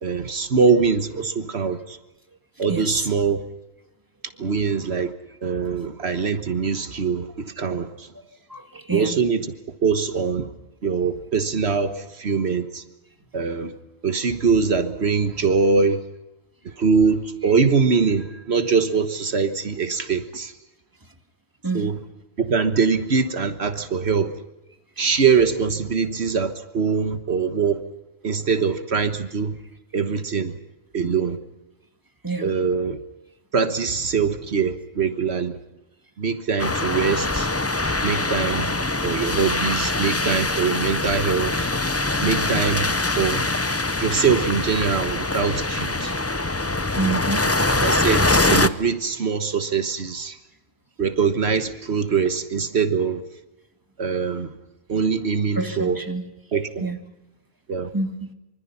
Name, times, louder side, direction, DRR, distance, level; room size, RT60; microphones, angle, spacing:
voice 1, 0.0-2.0 2.6-3.4 4.4-5.1 5.4-8.1 8.9-9.5 9.8-10.5 10.8-12.8 13.3-13.8 14.0-16.0 16.6-20.5 21.7-22.0 22.4-24.3 25.0-27.8 28.2-29.6 29.9-30.6 30.9-31.4 32.4-33.0 33.5-35.6 36.2-37.5 38.0-38.7 39.0-41.7 42.2-43.5 44.0-46.1 47.7-50.4 51.0-53.2 54.0-54.5 54.9-56.0 56.5-56.9 57.7-57.9, right 5 dB, 75° right, 9 dB, 1.6 m, -23 dB
voice 2, 2.7-3.1 8.5-9.2 21.6-21.9 32.2-32.5 47.0-47.5 55.6-56.2 56.8-57.0 57.9-58.3, right 3 dB, 20° right, 6 dB, 2.2 m, -27 dB
sound 1, 36.6-48.7, left 2 dB, 15° left, 0.7 m, -23 dB
25.5 x 25.5 x 5.7 m, 0.98 s
omnidirectional pair, 1.1 m